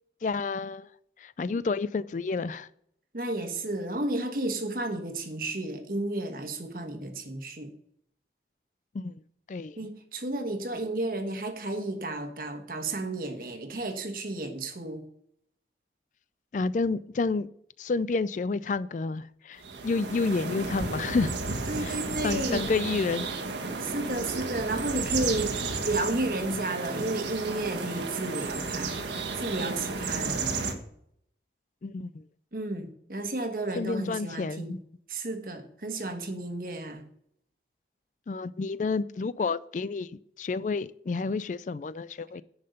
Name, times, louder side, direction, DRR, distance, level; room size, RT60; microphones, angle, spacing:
voice 1, 0.2-0.9 1.2-2.7 8.9-9.1 9.5-9.8 16.5-17.5 17.8-21.4 21.8-22.0 22.2-23.3 31.8-32.2 33.8-34.8 38.3-40.1 40.4-42.4, left 4 dB, 45° left, 0.3 m, -30 dB
voice 2, 3.1-7.7 9.8-15.0 21.7-22.7 23.8-29.0 29.3-30.7 32.5-34.8 35.1-37.1, right 2 dB, 50° right, 1.3 m, -32 dB
sound 1, 19.6-30.7, right 4 dB, 90° right, 1.4 m, -33 dB
10.5 x 5.7 x 6.6 m
head